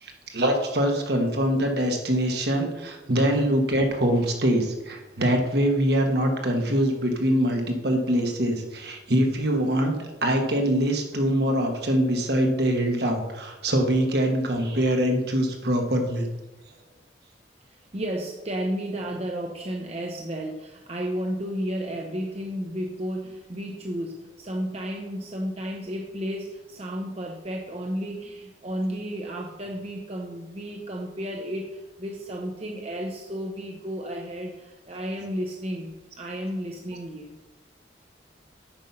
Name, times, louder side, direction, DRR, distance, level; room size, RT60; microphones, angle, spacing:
voice 1, 0.0-9.9 10.2-16.3, right 1 dB, 60° right, 3 dB, 1.4 m, -23 dB
voice 2, 17.9-37.3, equal, 35° right, 0 dB, 0.8 m, -32 dB
8.9 x 5.4 x 5.5 m, 1.1 s
head